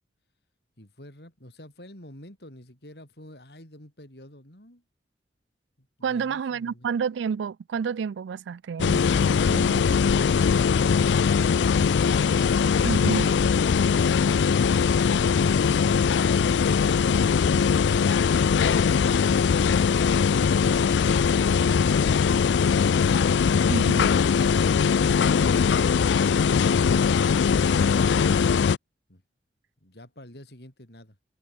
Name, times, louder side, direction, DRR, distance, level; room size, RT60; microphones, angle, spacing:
voice 1, 0.8-4.8 5.8-6.9 29.1-29.2 29.8-31.2, left 1 dB, 65° left, 6.7 m, -49 dB
voice 2, 6.0-10.0 12.8-13.3 23.7-24.1, right 6 dB, 90° right, 0.4 m, -30 dB
sound 1, 8.8-28.8, left 6 dB, 80° left, 0.4 m, -21 dB
head